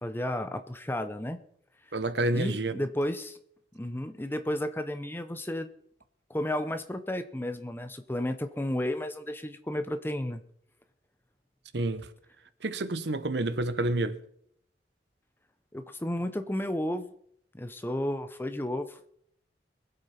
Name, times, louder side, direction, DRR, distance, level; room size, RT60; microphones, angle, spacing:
voice 1, 0.0-1.4 2.3-3.4 3.7-5.7 6.3-10.4 15.7-17.1 17.5-19.1, left 1 dB, 10° left, 0.8 m, -32 dB
voice 2, 1.9-2.8 11.7-12.1 12.6-14.2, right 2 dB, 70° right, 0.9 m, -29 dB
22.5 x 8.2 x 4.4 m
head